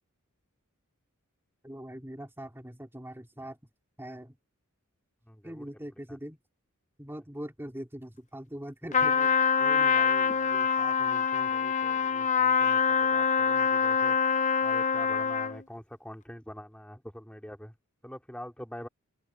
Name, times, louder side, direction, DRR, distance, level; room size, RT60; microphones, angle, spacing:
voice 1, 1.6-3.6 4.0-4.3 5.4-6.4 7.0-9.1, equal, 10° right, 2.9 m, -41 dB
voice 2, 5.3-5.7 6.1-6.2 7.2-7.3 9.0-9.3 9.6-14.2 14.6-17.7 18.0-18.9, equal, 5° left, 3.5 m, -45 dB
Trumpet, 8.9-15.6, left 6 dB, 35° left, 0.9 m, -25 dB
open air
head